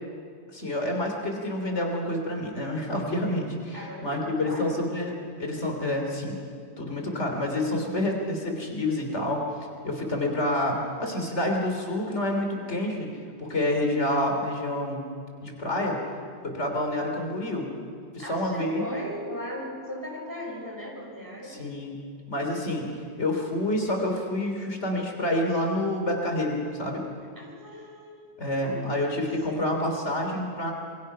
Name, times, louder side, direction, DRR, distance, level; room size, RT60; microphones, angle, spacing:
voice 1, 0.5-6.4 6.8-9.4 9.8-13.1 13.4-15.0 15.4-16.0 16.4-17.7 18.1-18.8 21.5-22.0 22.3-22.9 23.2-27.0 28.4-30.7, left 1 dB, 75° left, 2 dB, 3.5 m, -28 dB
voice 2, 3.7-4.8 18.2-21.6 27.4-28.9, equal, 15° right, -2 dB, 5.7 m, -38 dB
26.5 x 23.0 x 5.6 m, 2.2 s
omnidirectional pair, 1.2 m